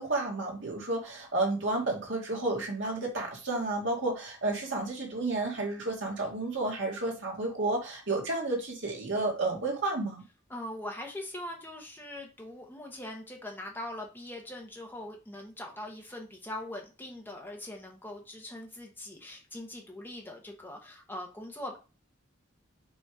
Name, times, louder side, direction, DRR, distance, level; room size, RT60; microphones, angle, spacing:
voice 1, 0.0-10.2, right 2 dB, 60° right, -1 dB, 2.3 m, -31 dB
voice 2, 10.5-21.8, left 1 dB, 10° left, 0 dB, 1.2 m, -42 dB
5.4 x 4.3 x 4.9 m, 0.31 s
head